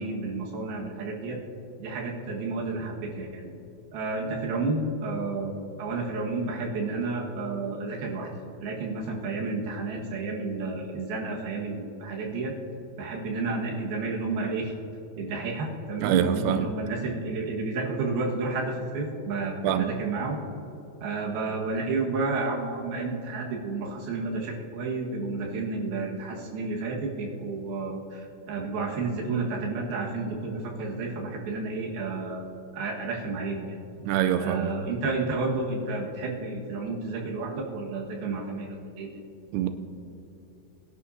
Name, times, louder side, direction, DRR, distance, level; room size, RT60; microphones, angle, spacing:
voice 1, 0.0-1.4 1.8-3.5 3.9-8.3 8.6-12.5 13.0-14.7 15.2-20.4 21.0-32.4 32.7-33.8 34.4-39.1, right 3 dB, 65° right, -2 dB, 3.3 m, -31 dB
voice 2, 16.0-16.7 19.6-19.9 34.0-34.7 39.5-39.7, right 10 dB, 90° right, 9 dB, 2.3 m, -25 dB
22.0 x 11.5 x 2.8 m, 2.8 s
omnidirectional pair, 5.2 m